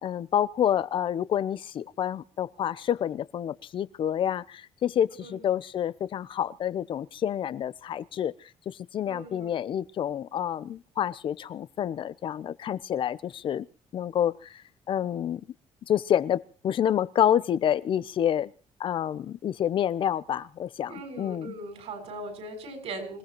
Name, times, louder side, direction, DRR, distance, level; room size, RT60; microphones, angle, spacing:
voice 1, 0.0-13.7 13.9-14.6 14.9-15.4 15.9-18.5 18.8-21.5, left 10 dB, 50° left, 17 dB, 0.7 m, -28 dB
voice 2, 9.0-9.5 20.9-23.2, right 2 dB, 70° right, 5 dB, 6.7 m, -39 dB
26.5 x 17.0 x 3.1 m, 0.37 s
cardioid pair, 140°, 11 cm